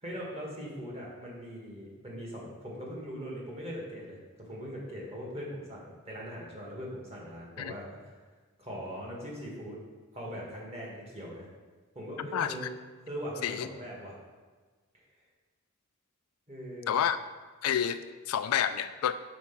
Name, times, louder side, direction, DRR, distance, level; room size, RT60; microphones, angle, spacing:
voice 1, 0.0-4.2 4.5-8.1 8.6-9.8 10.1-11.5 11.9-12.7 13.0-14.2 16.5-16.9, equal, 30° right, -4 dB, 1.8 m, -40 dB
voice 2, 12.2-12.6 13.4-13.7 16.9-17.2 17.6-19.1, left 9 dB, 70° left, 11 dB, 0.3 m, -29 dB
6.1 x 4.3 x 5.9 m, 1.4 s
head